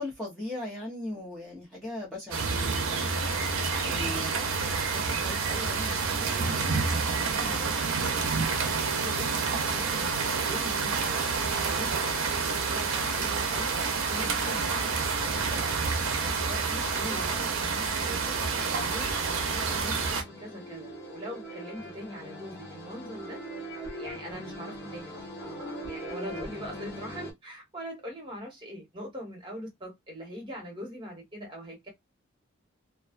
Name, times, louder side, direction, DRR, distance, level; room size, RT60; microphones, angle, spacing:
voice 1, 0.0-2.4 3.9-4.3 26.1-26.6, left 1 dB, ahead, 0.6 m, -37 dB
sound 1, 2.3-20.2, right 4 dB, 65° right, 0.5 m, -28 dB
voice 2, 3.7-8.3 8.8-11.3 11.6-13.8 14.1-15.6 16.2-23.4 24.0-31.9, equal, 25° right, 1.1 m, -43 dB
sound 2, 14.4-27.3, right 1 dB, 50° left, 1.0 m, -43 dB
2.4 x 2.2 x 2.3 m
head